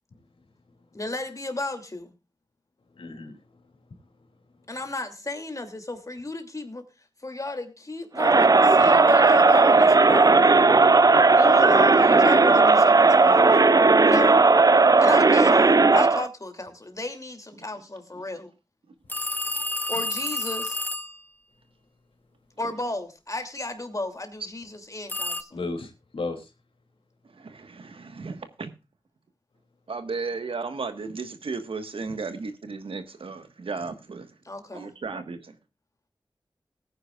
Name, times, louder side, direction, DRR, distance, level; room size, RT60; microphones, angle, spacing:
voice 1, 0.9-2.1 4.7-6.8 7.2-10.6 11.3-13.6 14.0-14.4 15.0-18.5 19.9-20.8 22.6-25.6 34.4-34.9, left 2 dB, 35° left, 6 dB, 2.7 m, -33 dB
voice 2, 2.9-3.6 25.5-26.5, left 3 dB, 85° left, 5 dB, 2.8 m, -34 dB
Crowd, 8.2-16.3, right 3 dB, 45° right, 0.6 m, -16 dB
sound 1, 19.1-21.2 25.1-25.4, left 1 dB, 20° left, 1.0 m, -30 dB
voice 3, 27.3-28.7 29.9-34.3 34.7-35.5, right 4 dB, 90° right, 9 dB, 1.4 m, -34 dB
19.5 x 9.8 x 2.4 m, 0.27 s
wide cardioid pair, 50°, 9 cm